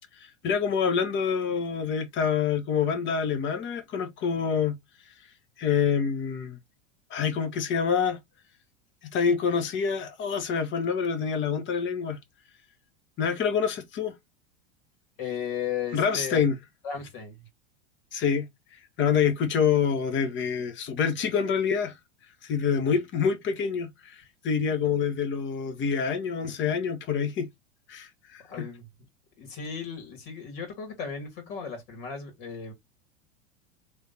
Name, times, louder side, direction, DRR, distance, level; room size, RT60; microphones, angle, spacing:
voice 1, 0.2-4.8 5.6-6.6 7.1-8.2 9.0-12.2 13.2-14.1 15.9-16.5 18.1-18.5 19.0-22.0 22.4-27.5 27.9-28.7, left 6 dB, 35° left, 1.2 m, -26 dB
voice 2, 15.2-16.4 16.8-17.4 28.5-28.8 29.4-32.7, left 7 dB, 50° left, 2.5 m, -35 dB
3.5 x 3.4 x 4.3 m
hypercardioid pair, 95°, 35 cm